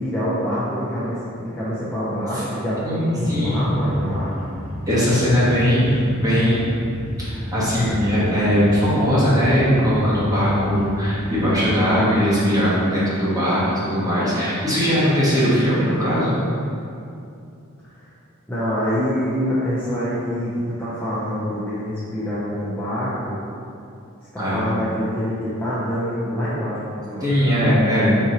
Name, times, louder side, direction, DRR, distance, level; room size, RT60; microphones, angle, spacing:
voice 1, 0.0-4.4 5.1-5.2 5.7-6.2 18.0-18.1 18.5-20.5 20.8-23.4 24.3-27.3, equal, 10° left, -11 dB, 0.6 m, -26 dB
voice 2, 2.8-3.7 4.9-6.8 7.2-16.4 24.4-24.7 27.2-28.1, equal, 15° right, -10 dB, 1.2 m, -19 dB
sound 1, 3.2-11.8, equal, 40° left, 1.2 m, -31 dB
4.3 x 3.8 x 2.9 m, 2.5 s
head